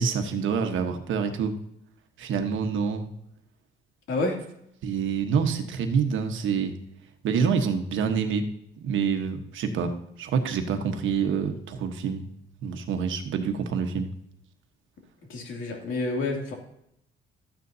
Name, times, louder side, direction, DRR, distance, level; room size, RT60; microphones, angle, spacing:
voice 1, 0.0-1.6 2.2-3.1 4.8-6.7 7.2-8.5 8.8-12.2 12.6-14.1, right 6 dB, 75° right, 6 dB, 1.3 m, -27 dB
voice 2, 15.3-16.5, left 2 dB, 80° left, 1 dB, 2.8 m, -28 dB
13.5 x 9.6 x 2.8 m, 0.75 s
cardioid pair, 90°, 20 cm